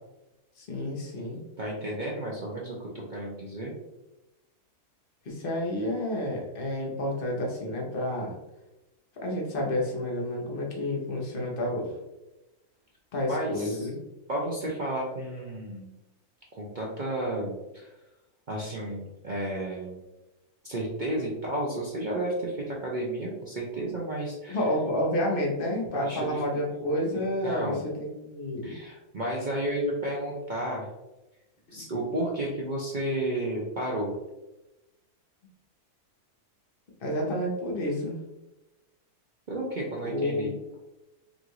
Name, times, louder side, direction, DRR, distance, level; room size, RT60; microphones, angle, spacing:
voice 1, 0.6-1.4 5.2-8.3 9.2-11.9 13.1-14.0 24.5-28.7 31.8-31.9 37.0-38.2 40.0-40.6, left 1 dB, 40° left, -2 dB, 1.0 m, -30 dB
voice 2, 1.6-3.7 13.3-13.9 14.3-15.9 16.5-17.9 18.5-20.0 20.6-24.7 25.9-26.4 27.4-27.8 28.6-30.9 31.7-34.1 39.5-40.5, right 1 dB, 55° right, -3 dB, 0.5 m, -32 dB
5.3 x 2.5 x 3.0 m, 0.99 s
omnidirectional pair, 1.6 m